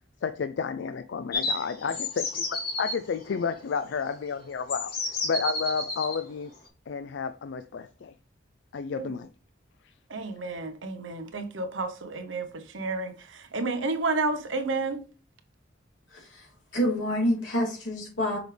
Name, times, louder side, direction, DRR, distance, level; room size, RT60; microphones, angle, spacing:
voice 1, 0.2-4.9 5.2-6.5 6.9-8.1 8.7-9.3 9.8-9.9, left 5 dB, 70° left, 0.4 m, -31 dB
sound 1, 1.3-3.0 4.0-4.1 4.7-6.2, left 2 dB, 55° left, 2.2 m, -31 dB
voice 2, 10.1-15.0, right 3 dB, 90° right, 1.0 m, -31 dB
voice 3, 16.1-16.5 16.7-18.4, equal, 90° left, 3.0 m, -27 dB
6.2 x 4.8 x 3.3 m
head